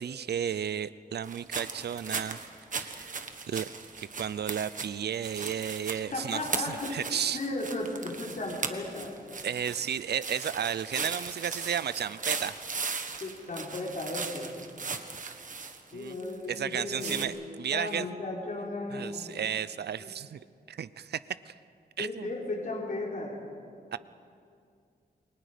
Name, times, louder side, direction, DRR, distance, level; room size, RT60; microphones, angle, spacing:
voice 1, 0.0-2.4 2.7-3.1 3.5-3.7 4.0-7.4 9.4-12.6 12.9-13.1 15.9-16.1 16.5-18.1 18.9-20.4 20.7-21.2 21.5-21.6 22.0-22.3 23.9-24.0, right 8 dB, 85° right, 16 dB, 0.6 m, -33 dB
sound 1, 1.2-16.6 16.9-17.2, right 4 dB, 50° right, 1.5 m, -38 dB
voice 2, 6.1-9.1 13.2-14.5 15.9-17.4 17.7-19.3 20.0-20.1 22.0-23.4, left 2 dB, 55° left, -3 dB, 4.0 m, -35 dB
29.0 x 23.5 x 5.1 m, 2.4 s
wide cardioid pair, 120°, 17 cm